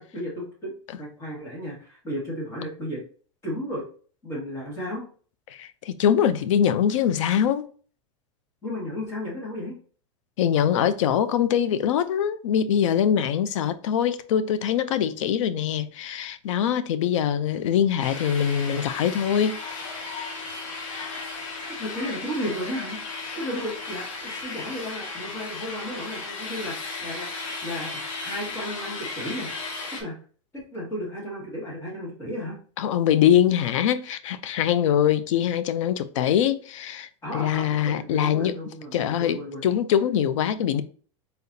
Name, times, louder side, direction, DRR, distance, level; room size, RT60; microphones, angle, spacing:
voice 1, 0.0-3.0 3.4-3.8 4.2-5.1 8.6-9.8 21.8-23.0 23.4-27.3 27.6-30.2 30.5-32.6 37.2-39.6, equal, 15° left, 1.6 m, -34 dB
voice 2, 5.5-7.7 10.4-20.0 32.8-38.6 38.9-40.8, left 9 dB, 75° left, 0.5 m, -23 dB
sound 1, 18.0-30.0, left 3 dB, 90° left, 1.8 m, -35 dB
4.1 x 3.9 x 2.7 m
supercardioid pair, 160°, 16 cm